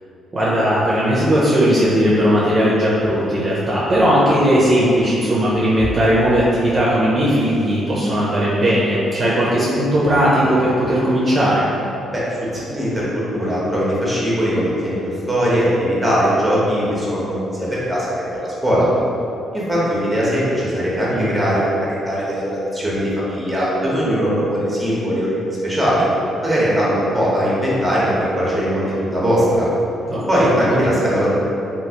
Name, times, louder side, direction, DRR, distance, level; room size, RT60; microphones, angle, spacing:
voice 1, 0.3-11.7 21.1-21.3 30.1-30.8, equal, 35° right, -7 dB, 0.6 m, -17 dB
voice 2, 12.1-18.1 18.4-18.9 19.5-26.1 26.4-29.7 30.3-31.3, equal, 5° right, -7 dB, 0.9 m, -20 dB
3.1 x 2.4 x 2.8 m, 2.8 s
cardioid pair, 90°, 0 cm